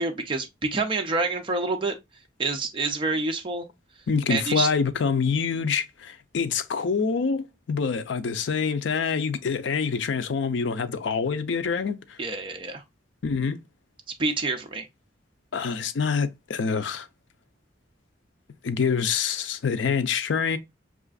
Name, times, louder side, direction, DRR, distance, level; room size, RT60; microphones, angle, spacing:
voice 1, 0.0-2.0 2.4-3.7 4.3-4.7 12.2-12.8 14.2-14.9, right 3 dB, 25° right, 0.5 m, -27 dB
voice 2, 4.1-12.2 13.2-13.6 15.5-17.1 18.6-20.6, left 5 dB, 75° left, 0.4 m, -26 dB
5.6 x 2.4 x 2.3 m
head